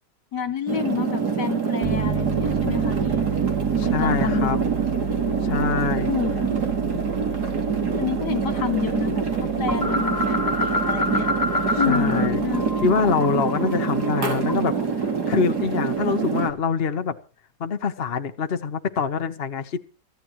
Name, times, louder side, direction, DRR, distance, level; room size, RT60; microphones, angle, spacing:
voice 1, 0.3-3.2 4.0-4.7 6.0-6.6 8.0-11.3 11.8-12.6, left 8 dB, 70° left, 7 dB, 2.6 m, -28 dB
sound 1, 0.7-16.5, right 6 dB, 65° right, 3.1 m, -25 dB
Piano, 1.8-13.1, right 5 dB, 45° right, 0.5 m, -32 dB
voice 2, 3.8-4.6 5.4-6.1 11.8-12.4 12.8-14.7 15.3-17.1 17.6-19.8, left 6 dB, 40° left, 8 dB, 1.0 m, -24 dB
sound 2, 9.7-12.3 12.5-14.8, left 2 dB, 15° left, 0.7 m, -27 dB
23.5 x 14.5 x 3.1 m, 0.36 s
omnidirectional pair, 1.9 m